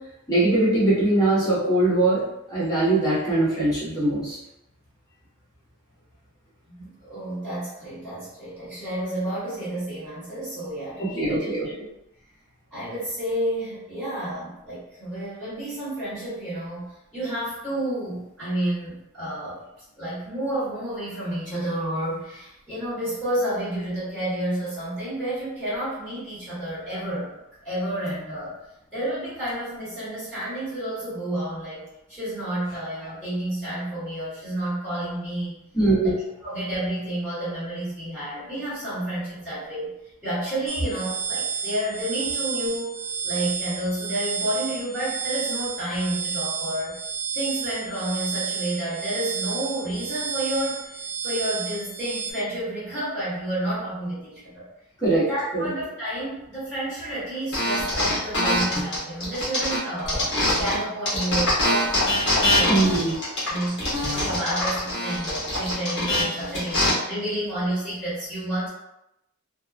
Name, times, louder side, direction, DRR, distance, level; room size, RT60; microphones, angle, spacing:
voice 1, 0.3-2.2 2.5-4.4 11.0-11.7 35.7-36.2 55.0-55.2 55.5-55.7 62.7-63.2, right 2 dB, 20° left, -10 dB, 1.1 m, -21 dB
voice 2, 6.7-11.7 12.7-19.6 20.0-28.5 28.9-35.6 36.4-47.0 47.3-54.7 55.1-62.0 62.2-63.0 63.5-68.7, right 1 dB, ahead, -14 dB, 1.3 m, -30 dB
sound 1, 40.7-52.3, right 6 dB, 75° right, 0.4 m, -31 dB
sound 2, 57.5-60.8 61.1-66.9, left 1 dB, 55° left, 1.0 m, -24 dB
2.7 x 2.2 x 2.4 m, 0.86 s
head